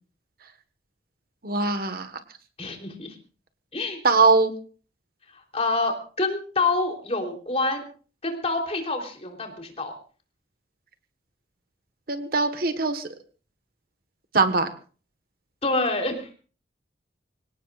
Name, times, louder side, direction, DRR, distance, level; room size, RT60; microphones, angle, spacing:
voice 1, 1.4-2.1 4.0-4.5 12.1-13.1 14.3-14.7, right 3 dB, 50° right, 9 dB, 1.5 m, -21 dB
voice 2, 2.6-3.2 3.7-4.0 5.3-7.8 8.2-9.9 15.6-16.3, left 3 dB, 35° left, 2 dB, 3.6 m, -27 dB
26.0 x 17.5 x 2.5 m, 0.39 s
head